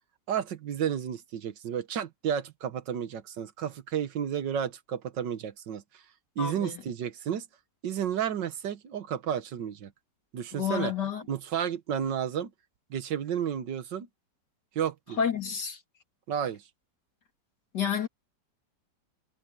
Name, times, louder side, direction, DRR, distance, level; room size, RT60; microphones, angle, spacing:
voice 1, 0.3-5.8 6.4-7.4 7.8-9.9 10.3-10.9 11.3-12.5 12.9-14.1 14.7-15.2 16.3-16.6, right 8 dB, 85° right, 1.8 m, -32 dB
voice 2, 6.4-6.8 10.5-11.2 15.2-15.8 17.7-18.1, left 7 dB, 70° left, 3.1 m, -30 dB
omnidirectional pair, 1.9 m